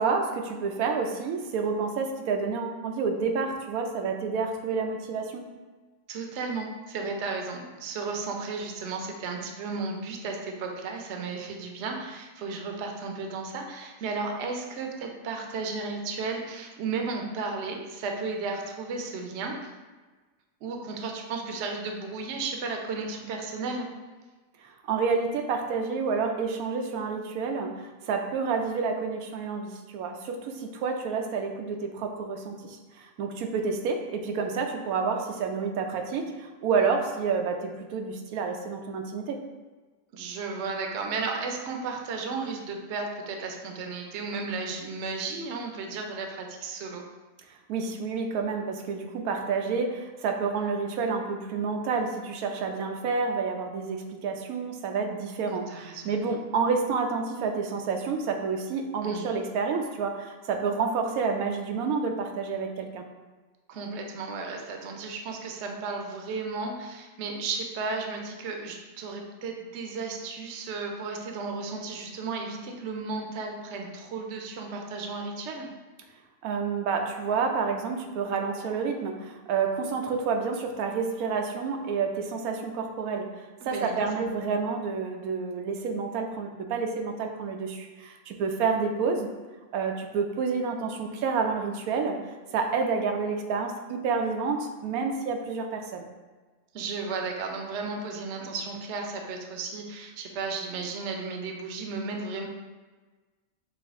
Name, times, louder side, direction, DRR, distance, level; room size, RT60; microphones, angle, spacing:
voice 1, 0.0-5.5 24.6-39.4 47.7-63.0 76.4-89.3 89.7-92.2 92.5-96.1, right 5 dB, 90° right, 3 dB, 1.0 m, -29 dB
voice 2, 6.1-19.7 20.6-23.9 40.1-47.1 55.5-56.1 59.0-59.3 63.7-75.7 83.6-84.1 96.7-102.5, right 4 dB, 60° right, 2 dB, 0.8 m, -34 dB
5.5 x 2.6 x 3.5 m, 1.3 s
omnidirectional pair, 1.5 m